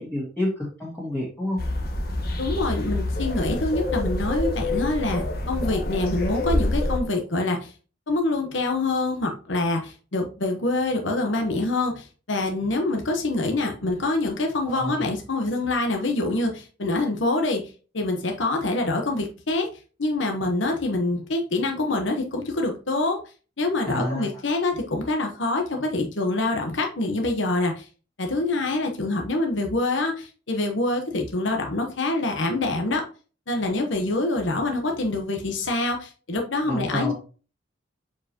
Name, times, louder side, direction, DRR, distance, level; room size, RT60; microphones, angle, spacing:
voice 1, 0.0-1.6 14.6-15.1 23.8-24.3 36.7-37.1, left 1 dB, 5° left, -7 dB, 2.1 m, -29 dB
sound 1, 1.6-7.0, left 1 dB, 55° left, 1.3 m, -27 dB
voice 2, 2.4-7.7 8.1-17.6 17.9-19.7 20.0-23.2 23.6-27.9 28.2-33.0 33.5-37.1, left 2 dB, 70° left, 3 dB, 1.1 m, -25 dB
7.3 x 4.8 x 2.9 m, 0.36 s
head